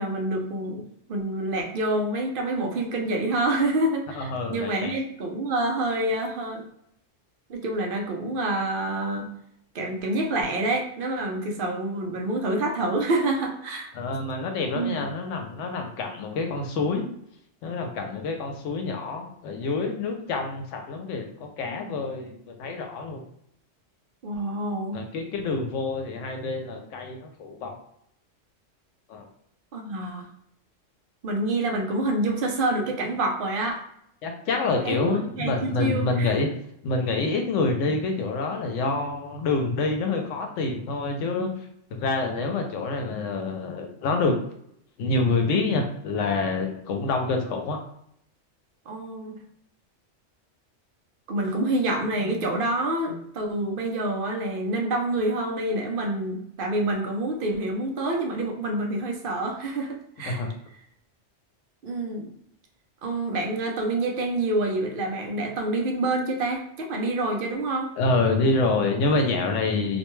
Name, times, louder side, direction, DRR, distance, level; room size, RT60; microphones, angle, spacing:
voice 1, 0.0-6.6 7.5-9.3 9.7-13.9 14.7-15.0 24.2-25.0 29.7-30.3 31.2-33.8 34.8-36.5 48.9-49.4 51.3-60.5 61.8-62.3 63.0-67.9, right 2 dB, 60° right, 2 dB, 0.6 m, -27 dB
voice 2, 4.1-5.0 13.9-17.1 17.6-23.2 24.9-27.8 29.1-29.3 34.2-36.5 36.8-41.5 41.9-44.4 45.0-47.8 60.3-60.5 68.0-70.0, left 3 dB, 85° left, 4 dB, 0.9 m, -27 dB
2.5 x 2.2 x 3.0 m, 0.73 s
omnidirectional pair, 1.2 m